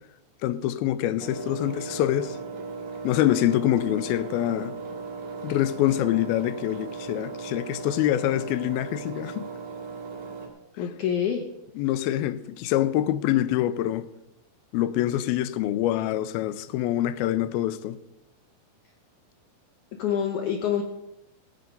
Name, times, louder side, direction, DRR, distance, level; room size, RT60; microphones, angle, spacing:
voice 1, 0.4-2.4 3.0-4.8 5.4-9.4 11.8-14.1 14.7-18.0, left 13 dB, 85° left, 2.5 m, -25 dB
Engine, 1.2-10.5, right 4 dB, 70° right, 3.6 m, -37 dB
voice 2, 10.8-11.5 20.0-20.8, left 8 dB, 70° left, 2.0 m, -26 dB
15.5 x 8.7 x 5.3 m
omnidirectional pair, 4.3 m